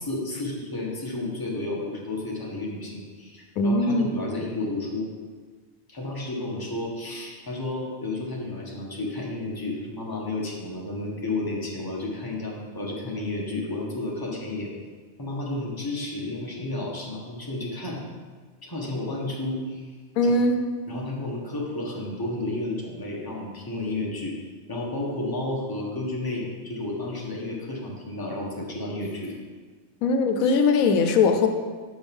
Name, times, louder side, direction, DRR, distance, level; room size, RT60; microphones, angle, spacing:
voice 1, 0.0-5.1 5.9-14.7 15.2-18.0 18.6-19.8 20.2-20.3 20.9-24.4 24.7-29.3, left 2 dB, 15° left, -3 dB, 1.3 m, -32 dB
voice 2, 3.6-4.1 20.2-20.6 30.0-31.5, left 3 dB, 85° left, 6 dB, 1.1 m, -20 dB
7.0 x 5.3 x 5.3 m, 1.5 s
omnidirectional pair, 1.4 m